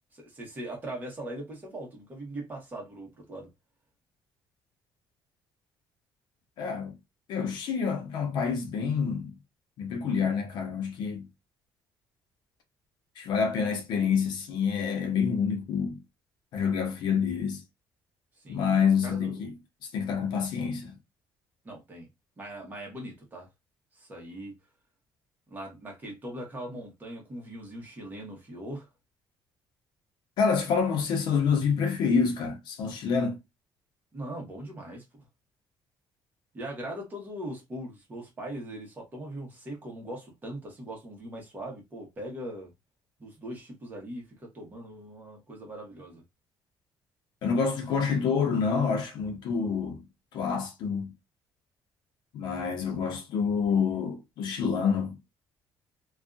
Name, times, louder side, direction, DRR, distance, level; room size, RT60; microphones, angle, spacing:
voice 1, 0.1-3.5 18.4-18.7 19.0-19.5 20.3-20.4 21.6-22.1 22.4-23.5 24.0-24.5 25.5-28.9 34.1-35.2 36.5-42.7 43.2-46.2, right 1 dB, 25° right, 1.1 m, -40 dB
voice 2, 6.6-7.0 7.3-9.4 9.8-11.3 13.2-16.0 16.5-17.6 18.5-19.5 19.8-21.0 30.4-33.4 47.4-50.0 50.3-51.1 52.3-55.1, left 6 dB, 70° left, 0.7 m, -27 dB
2.6 x 2.4 x 2.3 m
cardioid pair, 155°, 8 cm